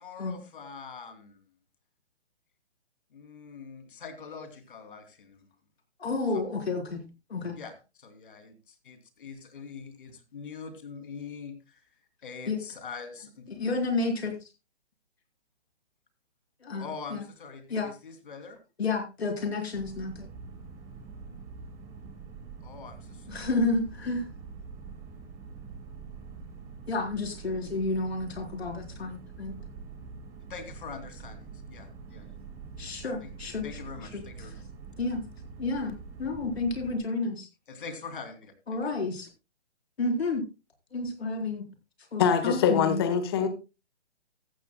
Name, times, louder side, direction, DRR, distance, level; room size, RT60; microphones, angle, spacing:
voice 1, 0.0-1.4 3.1-5.4 7.5-7.7 8.0-11.8 12.2-13.5 16.8-18.6 22.6-23.5 30.5-32.4 32.8-32.9 33.2-33.3 33.6-34.5 37.7-39.0, left 5 dB, 50° left, 8 dB, 2.9 m, -43 dB
voice 2, 6.0-7.0 7.3-7.5 12.5-12.6 13.5-14.5 16.6-17.2 17.7-17.9 18.8-20.3 23.3-24.2 26.9-29.5 32.8-33.7 34.1-34.5 35.0-35.2 35.6-37.5 38.7-39.3 40.0-40.4 40.9-41.6 42.1-43.0, left 3 dB, 65° left, 3 dB, 4.2 m, -30 dB
sound 1, 19.7-37.0, right 5 dB, 10° right, 1.2 m, -45 dB
voice 3, 42.2-43.5, left 7 dB, 20° left, 9 dB, 1.1 m, -23 dB
14.5 x 14.0 x 2.2 m, 0.28 s
hypercardioid pair, 160°, 34 cm